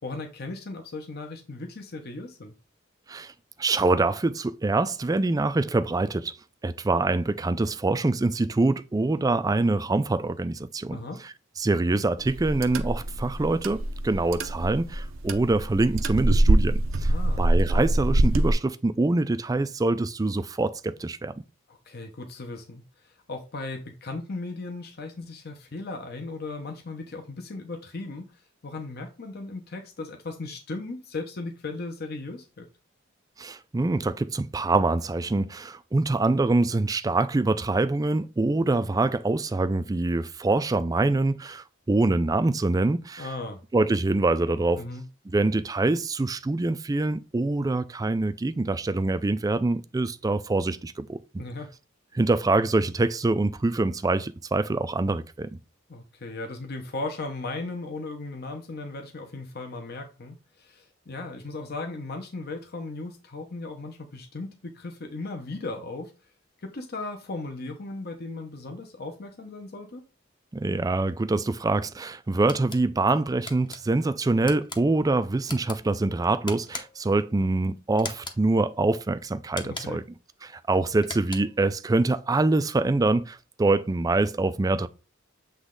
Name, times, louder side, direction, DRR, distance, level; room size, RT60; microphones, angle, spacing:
voice 1, 0.0-2.5 10.9-11.2 17.1-17.5 21.7-28.3 28.6-32.7 43.2-43.6 44.8-45.1 51.4-51.7 55.9-66.1 66.6-70.0 79.6-80.0, left 3 dB, 50° left, 0.9 m, -37 dB
voice 2, 3.6-6.3 6.6-11.0 11.6-17.1 17.4-21.3 33.4-43.3 43.7-44.8 45.3-51.4 52.1-55.5 70.5-80.0 80.4-84.9, right 2 dB, 20° right, 0.4 m, -25 dB
sound 1, 12.2-18.5, right 1 dB, 75° right, 0.7 m, -24 dB
sound 2, 72.5-72.8 73.5-73.8 74.4-74.8 75.4-75.8 76.5-77.1 78.0-78.4 79.5-80.1 81.0-81.6, left 3 dB, 25° left, 0.8 m, -39 dB
8.0 x 3.1 x 3.8 m
head